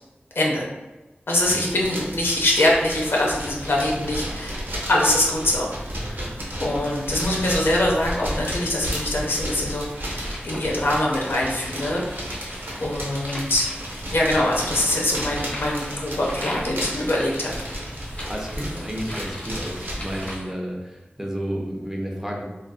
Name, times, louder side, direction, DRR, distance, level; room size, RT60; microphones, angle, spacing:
voice 1, 0.4-0.7 1.3-4.6 4.9-6.3 6.6-12.1 12.8-13.7 14.1-17.5, left 1 dB, 75° left, -2 dB, 0.6 m, -23 dB
sound 1, 1.3-20.4, equal, 60° right, 0.8 m, -33 dB
sound 2, 9.1-20.5, left 1 dB, 40° left, 0.9 m, -41 dB
voice 2, 17.9-22.4, equal, 10° right, -1 dB, 0.6 m, -32 dB
2.5 x 2.3 x 2.3 m, 1.1 s
wide cardioid pair, 45°, 4 cm